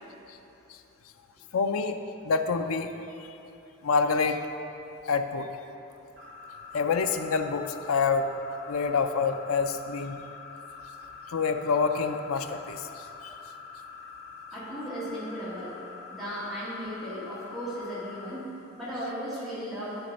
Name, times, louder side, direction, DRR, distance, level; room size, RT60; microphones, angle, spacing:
voice 1, 1.5-2.0 2.2-2.9 3.2-3.3 3.8-4.4 5.1-5.5 6.7-8.3 8.7-10.2 11.3-13.3, left 5 dB, 80° left, 8 dB, 0.5 m, -27 dB
sound 1, 6.2-18.3, left 5 dB, 45° right, 1.0 m, -45 dB
voice 2, 14.5-15.8 16.1-20.0, equal, ahead, -12 dB, 1.9 m, -36 dB
10.5 x 4.4 x 5.2 m, 2.9 s
head